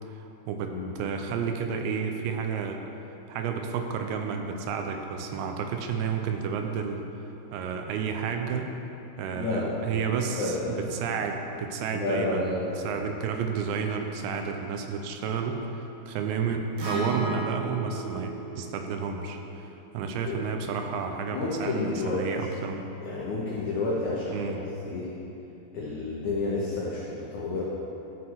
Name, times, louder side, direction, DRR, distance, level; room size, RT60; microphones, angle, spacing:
voice 1, 0.1-2.8 3.3-7.0 7.5-8.7 9.2-12.6 12.8-19.7 19.9-22.9 24.3-24.6, right 6 dB, 85° right, 4 dB, 3.0 m, -31 dB
voice 2, 9.3-10.0 10.3-10.9 11.9-13.1 20.0-20.5 21.3-22.3 23.0-24.5 24.8-25.1 25.7-27.6, left 2 dB, 85° left, -5 dB, 1.7 m, -30 dB
Acoustic guitar, 16.8-21.0, right 3 dB, 65° right, 3.9 m, -36 dB
13.0 x 6.3 x 4.7 m, 2.9 s
omnidirectional pair, 5.1 m